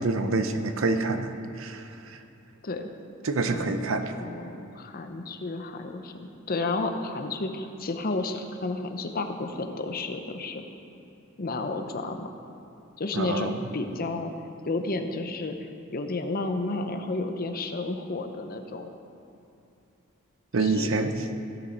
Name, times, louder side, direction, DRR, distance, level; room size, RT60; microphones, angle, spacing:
voice 1, 0.0-2.2 3.2-4.1 13.1-13.5 20.5-21.1, right 3 dB, 70° right, 8 dB, 0.7 m, -27 dB
voice 2, 4.1-10.6 11.4-12.3 13.0-14.3 14.6-15.6 15.9-18.9 20.6-20.9, left 2 dB, 45° left, 6 dB, 0.7 m, -31 dB
16.5 x 6.6 x 4.5 m, 2.8 s
head